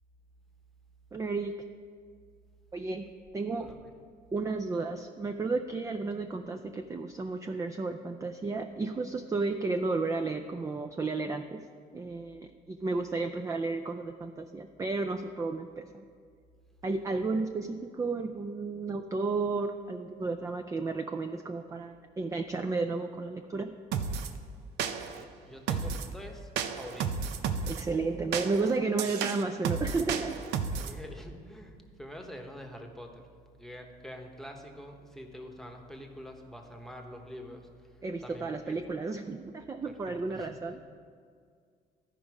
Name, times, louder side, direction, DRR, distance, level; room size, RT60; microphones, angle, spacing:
voice 1, 1.1-1.5 2.7-3.1 3.3-3.7 4.3-11.6 11.9-16.0 16.8-23.7 27.7-30.4 38.0-40.9, right 3 dB, 20° right, 6 dB, 0.4 m, -32 dB
voice 2, 3.6-3.9 17.1-17.5 25.0-27.4 30.8-33.3 33.6-38.8 40.1-40.6, equal, ahead, 3 dB, 1.0 m, -46 dB
sound 1, 23.9-24.3 24.8-25.2 25.7-26.1 26.6-27.8 28.3-31.0, right 6 dB, 80° right, 0.6 m, -32 dB
13.0 x 5.2 x 4.8 m, 2.1 s
cardioid pair, 110°, 17 cm